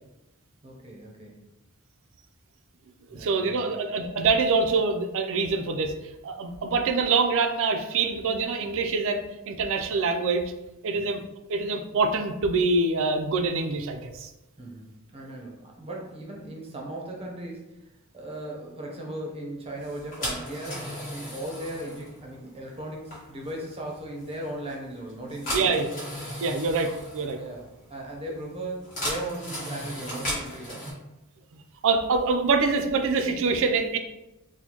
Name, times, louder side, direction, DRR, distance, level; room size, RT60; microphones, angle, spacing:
voice 1, 0.6-1.4 3.1-3.8 10.9-11.1 14.6-25.7 27.3-31.0, right 1 dB, 25° right, -1 dB, 0.7 m, -38 dB
voice 2, 3.2-6.0 6.2-10.5 10.8-11.2 11.5-14.3 25.5-26.0 26.4-27.4 31.8-34.0, right 4 dB, 65° right, 6 dB, 0.4 m, -25 dB
sound 1, 19.8-30.9, equal, 40° left, 1.4 m, -37 dB
4.2 x 2.1 x 2.9 m, 0.95 s
head